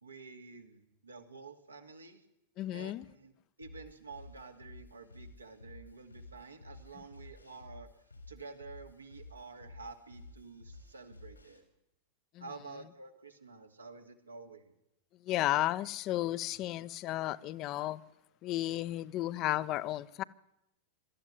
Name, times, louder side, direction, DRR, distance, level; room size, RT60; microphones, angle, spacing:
voice 1, 0.0-2.2 2.7-3.3 3.6-7.9 8.3-11.6 12.4-14.7, right 4 dB, 80° right, 2.4 m, -50 dB
voice 2, 2.6-3.1 12.3-12.4 15.2-18.0 18.4-20.2, left 15 dB, 40° left, 0.8 m, -33 dB
sound 1, 3.6-11.6, left 2 dB, 85° left, 4.1 m, -53 dB
24.5 x 13.5 x 9.6 m
figure-of-eight pair, 90°, 0 cm